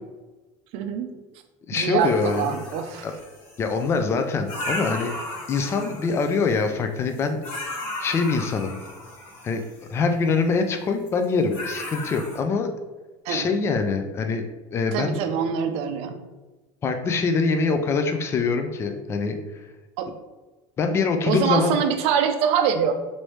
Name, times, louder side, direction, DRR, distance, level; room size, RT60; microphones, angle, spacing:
voice 1, 0.7-1.1 1.7-3.1 13.3-13.5 14.9-16.2 20.0-20.1 21.3-22.9, right 7 dB, 60° right, 7 dB, 0.4 m, -24 dB
voice 2, 1.7-2.6 3.0-3.1 3.6-7.7 8.0-8.8 9.4-9.6 9.9-12.7 13.3-15.2 16.8-19.7 20.8-21.8, left 4 dB, 20° left, 6 dB, 0.3 m, -24 dB
sound 1, 2.0-4.0 4.5-6.7 7.1-9.9 11.1-11.2 11.5-12.4, left 1 dB, 80° left, 1.2 m, -35 dB
3.0 x 2.6 x 3.2 m, 1.2 s
cardioid pair, 140°, 12 cm